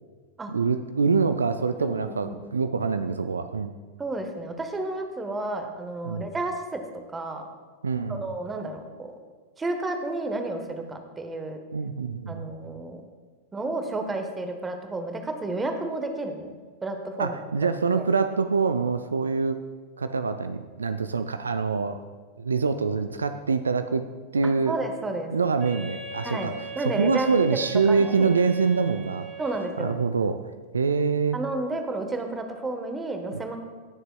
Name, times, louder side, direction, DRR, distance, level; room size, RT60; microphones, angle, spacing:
voice 1, 0.5-3.7 6.0-6.3 7.8-8.3 11.7-12.5 17.2-19.6 20.0-22.0 22.4-24.1 24.3-24.8 25.3-29.3 29.8-30.4 30.7-31.4 33.3-33.4, right 5 dB, 75° right, 10 dB, 0.4 m, -25 dB
voice 2, 1.8-2.3 4.0-6.8 7.1-7.5 8.1-9.1 9.6-11.6 12.3-13.0 13.5-16.5 16.8-18.1 24.4-25.3 26.2-27.6 27.9-28.3 29.4-30.0 31.3-33.6, right 2 dB, 15° right, 6 dB, 1.1 m, -31 dB
Wind instrument woodwind instrument, 25.6-30.0, right 3 dB, 30° right, 3.1 m, -39 dB
19.0 x 6.7 x 2.2 m, 1.4 s
figure-of-eight pair, 90°, 0 cm